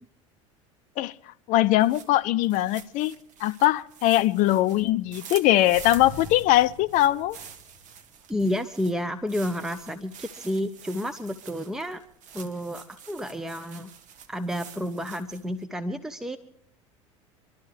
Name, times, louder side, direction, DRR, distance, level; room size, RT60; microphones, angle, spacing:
voice 1, 1.0-7.4, left 15 dB, 50° left, 0.6 m, -22 dB
sound 1, 1.7-15.6, right 7 dB, 45° right, 1.2 m, -47 dB
sound 2, 4.0-5.2 5.6-8.0 8.4-8.5 9.2-10.0, left 1 dB, 85° right, 7.3 m, -45 dB
voice 2, 8.3-12.0 12.3-13.9 14.3-16.4, equal, 5° right, 0.8 m, -30 dB
25.5 x 12.0 x 3.4 m
hypercardioid pair, 75°, 17 cm